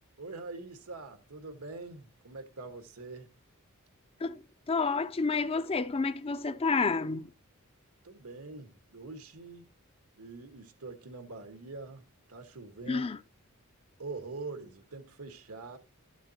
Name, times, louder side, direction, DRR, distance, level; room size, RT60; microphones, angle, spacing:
voice 1, 0.2-3.3 8.0-9.7 10.2-12.0 12.3-13.1 14.0-15.8, right 3 dB, 85° right, 1.6 m, -44 dB
voice 2, 4.7-7.3 12.9-13.2, left 4 dB, 25° left, 0.4 m, -29 dB
12.5 x 7.2 x 2.8 m
head